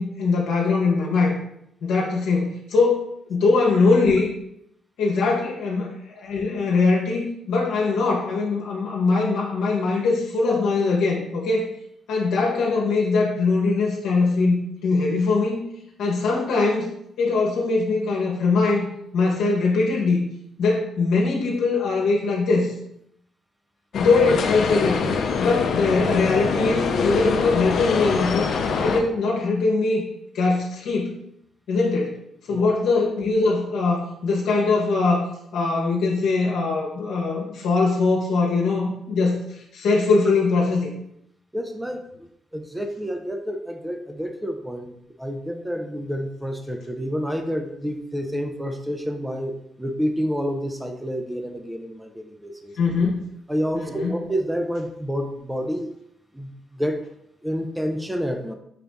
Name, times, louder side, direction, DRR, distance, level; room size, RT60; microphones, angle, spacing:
voice 1, 0.0-1.4 1.8-3.0 3.3-4.3 5.0-11.6 12.1-15.6 16.0-16.9 17.2-18.9 19.1-20.3 20.6-22.7 23.9-28.5 28.8-30.0 30.3-31.1 31.7-32.2 32.5-35.3 35.5-40.9 52.8-53.3 53.7-54.1, left 3 dB, 80° left, -3 dB, 1.0 m, -21 dB
sound 1, 23.9-29.0, left 5 dB, 60° left, 0.5 m, -24 dB
voice 2, 41.5-52.7 53.5-55.9 56.3-57.0 57.4-58.5, equal, 5° right, 5 dB, 0.5 m, -29 dB
5.8 x 2.6 x 3.4 m, 0.76 s
cardioid pair, 90°, 0 cm